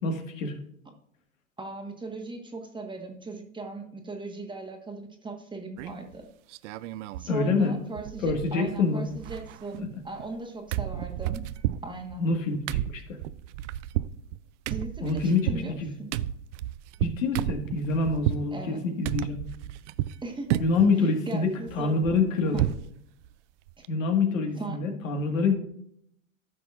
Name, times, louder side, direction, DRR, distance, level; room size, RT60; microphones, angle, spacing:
voice 1, 0.0-0.5 7.3-7.8 8.2-9.0 12.2-13.0 15.0-15.9 17.0-19.4 20.6-22.6 23.9-25.6, left 4 dB, 75° left, 4 dB, 1.7 m, -26 dB
voice 2, 1.6-6.3 7.2-11.5 11.8-12.3 14.7-15.7 16.0-16.1 18.5-18.8 20.2-20.6 21.0-22.2 22.5-22.7 23.8-23.9 24.6-24.8, right 3 dB, 10° right, 3 dB, 1.3 m, -38 dB
sound 1, 5.8-6.1 6.5-7.3 7.6-7.7 8.0-8.8 9.1-10.4 10.7-18.5 19.0-20.2 20.5-20.9 21.3-22.9 23.2-23.3 23.7-23.9, right 13 dB, 65° right, 0.5 m, -32 dB
14.0 x 5.9 x 2.5 m, 0.72 s
hypercardioid pair, 100°, 40 cm